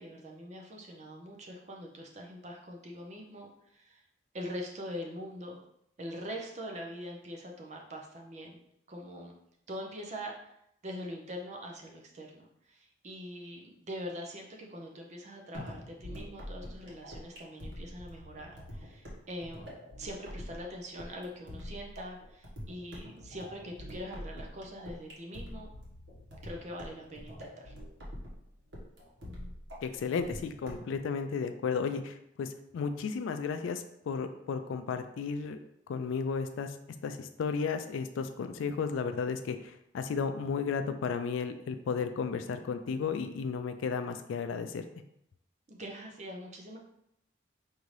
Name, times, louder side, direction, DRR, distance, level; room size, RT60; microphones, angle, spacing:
voice 1, 0.0-4.0 4.3-5.6 6.0-8.6 8.9-9.3 9.7-10.5 10.8-25.7 26.4-27.7 45.7-46.8, equal, 35° right, 0 dB, 0.5 m, -43 dB
sound 1, 15.5-31.0, equal, 70° right, 1.2 m, -45 dB
voice 2, 29.8-35.6 35.9-36.8 37.0-44.8, left 5 dB, 85° left, 8 dB, 0.3 m, -34 dB
4.9 x 2.7 x 3.1 m, 0.76 s
head